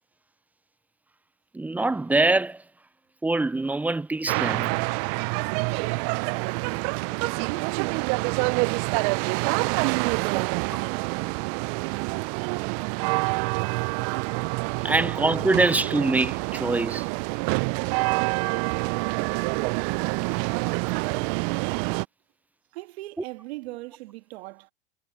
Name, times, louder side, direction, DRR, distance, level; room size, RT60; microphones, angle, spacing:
voice 1, 1.5-2.6 3.2-4.7 14.8-17.1, right 2 dB, 5° right, 0.3 m, -24 dB
sound 1, 4.3-22.1, right 30 dB, 55° right, 0.5 m, -27 dB
voice 2, 5.8-7.0 7.3-8.9 9.2-10.9 14.8-14.9 17.4-17.9 22.7-24.7, right 21 dB, 70° right, 2.3 m, -40 dB
hypercardioid pair, 100°, 33 cm